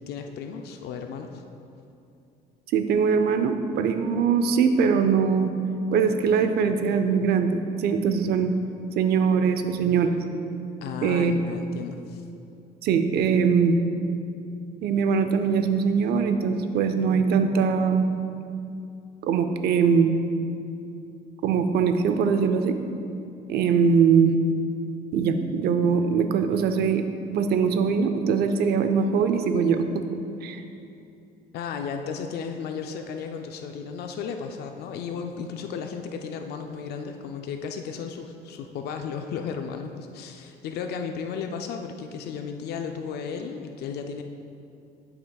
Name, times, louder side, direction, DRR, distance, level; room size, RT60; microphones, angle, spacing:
voice 1, 0.1-1.4 10.8-12.2 31.5-44.2, left 6 dB, 70° left, 5 dB, 0.5 m, -34 dB
voice 2, 2.7-5.5 5.9-8.5 9.0-10.2 11.0-11.3 12.8-13.8 14.8-18.1 19.2-20.1 21.4-22.8 23.5-24.3 25.1-27.0 27.3-30.0 30.4-30.6, right 6 dB, 70° right, 8 dB, 0.6 m, -22 dB
11.0 x 5.8 x 2.3 m, 2.7 s
cardioid pair, 110°, 17 cm